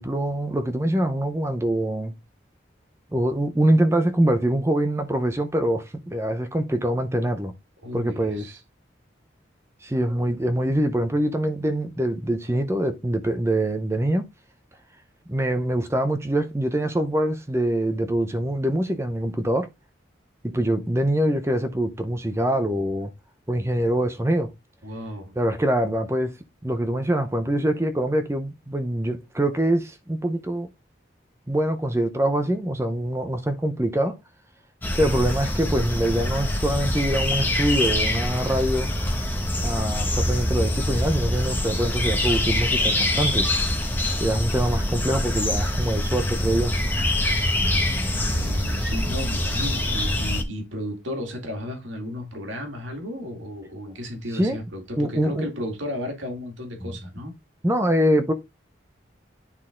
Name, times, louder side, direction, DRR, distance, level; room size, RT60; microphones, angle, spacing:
voice 1, 0.0-2.1 3.1-7.5 7.9-8.6 9.8-14.2 15.3-19.7 20.4-23.1 23.5-24.5 25.4-30.7 31.5-34.2 35.0-38.9 39.6-43.5 44.2-46.8 54.3-54.6 55.0-55.5 56.8-56.9 57.6-58.3, right 1 dB, 15° right, 0.6 m, -24 dB
voice 2, 7.8-8.6 24.8-25.3 48.1-57.3, equal, 85° right, 2.3 m, -34 dB
sound 1, 34.8-50.4, left 1 dB, 10° left, 1.1 m, -24 dB
9.8 x 4.1 x 3.7 m
head